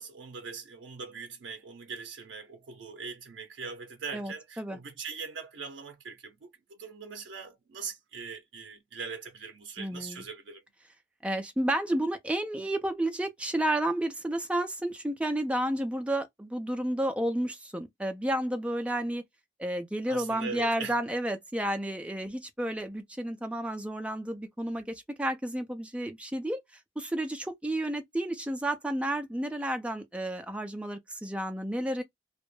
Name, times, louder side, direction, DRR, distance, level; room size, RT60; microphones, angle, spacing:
voice 1, 0.0-10.6 20.1-21.0, right 5 dB, 90° right, 0.4 m, -41 dB
voice 2, 4.1-4.8 9.8-10.2 11.2-19.2 19.6-26.6 27.0-32.0, right 1 dB, 5° right, 0.4 m, -31 dB
2.2 x 2.0 x 3.0 m
head